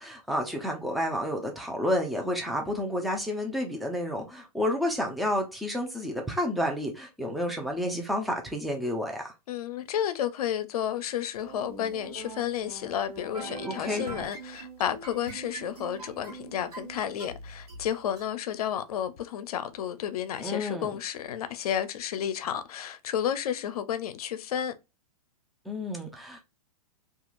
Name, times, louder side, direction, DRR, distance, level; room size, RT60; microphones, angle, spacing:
voice 1, 0.0-9.3 13.6-14.1 20.4-21.0 25.7-26.4, left 1 dB, ahead, 0.5 m, -30 dB
voice 2, 9.5-24.7, left 9 dB, 70° left, 0.5 m, -32 dB
sound 1, 11.4-18.3, right 3 dB, 80° right, 1.3 m, -42 dB
2.9 x 2.4 x 2.4 m
hypercardioid pair, 130°, 20 cm